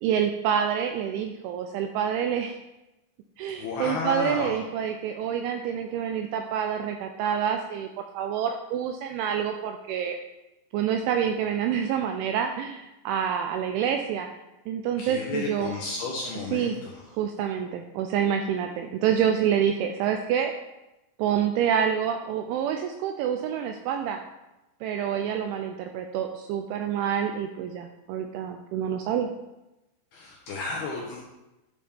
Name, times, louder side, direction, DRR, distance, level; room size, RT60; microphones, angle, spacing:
voice 1, 0.0-2.6 3.4-10.2 10.7-14.3 14.7-15.7 16.5-16.8 17.2-20.5 21.2-24.2 24.8-29.3, right 8 dB, 85° right, 5 dB, 2.7 m, -27 dB
voice 2, 3.5-4.5 15.0-17.0 30.1-31.2, left 4 dB, 75° left, -3 dB, 2.4 m, -32 dB
11.0 x 7.1 x 3.6 m, 0.98 s
omnidirectional pair, 5.9 m